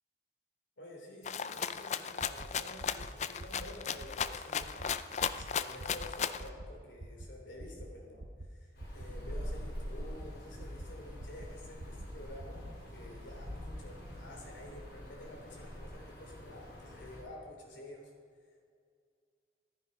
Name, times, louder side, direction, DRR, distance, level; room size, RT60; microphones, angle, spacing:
voice 1, 0.8-4.9 5.2-18.1, left 1 dB, 85° left, 0 dB, 3.2 m, -50 dB
Rattle (instrument), 1.2-6.5, left 7 dB, 40° left, 0.4 m, -36 dB
sound 1, 2.2-2.5 2.8-3.1 3.4-3.7 4.0-4.3 4.6-4.9 5.2-5.5 5.8-6.1 6.4-6.7 7.0-7.3 7.6-7.9 8.2-8.5 8.8-9.1 9.4-9.7 10.0-10.3 10.6-10.9 11.2-11.5 11.8-12.1 12.4-12.5, right 2 dB, 55° right, 0.9 m, -46 dB
sound 2, 8.7-17.2, equal, 65° left, 3.8 m, -45 dB
14.0 x 12.0 x 5.3 m, 2.1 s
head